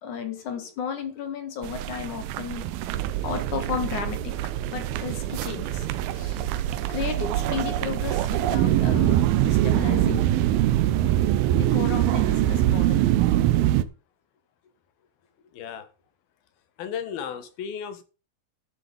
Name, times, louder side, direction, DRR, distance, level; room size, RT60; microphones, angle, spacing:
voice 1, 0.0-2.7 3.2-4.3 4.6-5.9 6.1-6.4 6.9-10.2 11.5-13.1, left 7 dB, 60° left, 3.1 m, -33 dB
sound 1, 1.6-13.8, right 13 dB, 85° right, 2.6 m, -24 dB
sound 2, 2.9-13.7, right 12 dB, 70° right, 1.9 m, -31 dB
voice 2, 15.5-15.9 16.8-18.0, left 8 dB, 80° left, 3.4 m, -34 dB
13.0 x 6.9 x 5.3 m
omnidirectional pair, 4.3 m